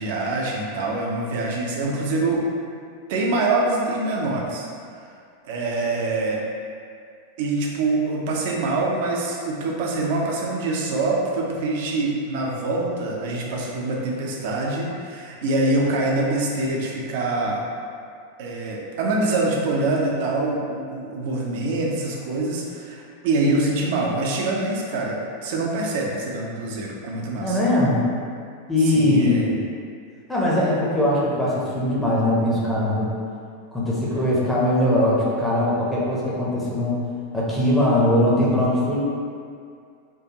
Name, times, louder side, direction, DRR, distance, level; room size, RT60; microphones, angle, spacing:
voice 1, 0.0-2.5 3.1-4.7 5.0-5.1 5.4-6.4 7.4-17.7 18.4-27.6 28.8-29.5, right 2 dB, 50° right, -2 dB, 0.6 m, -25 dB
voice 2, 27.4-28.1 28.7-29.7 30.3-33.1 33.7-37.0 37.3-39.0, left 1 dB, 5° left, -7 dB, 0.8 m, -21 dB
4.5 x 2.5 x 2.9 m, 2.3 s
figure-of-eight pair, 90°, 0 cm